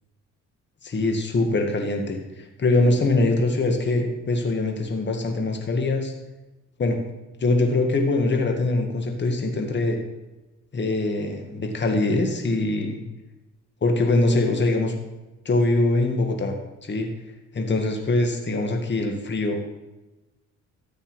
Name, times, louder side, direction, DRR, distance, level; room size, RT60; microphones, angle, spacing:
voice 1, 0.8-6.1 6.8-7.0 7.4-10.0 10.7-13.0 13.8-14.9 15.5-16.5 16.8-17.1 17.5-19.6, left 2 dB, 35° left, 3 dB, 2.1 m, -23 dB
13.5 x 8.5 x 5.0 m, 1.0 s
cardioid pair, 90°, 30 cm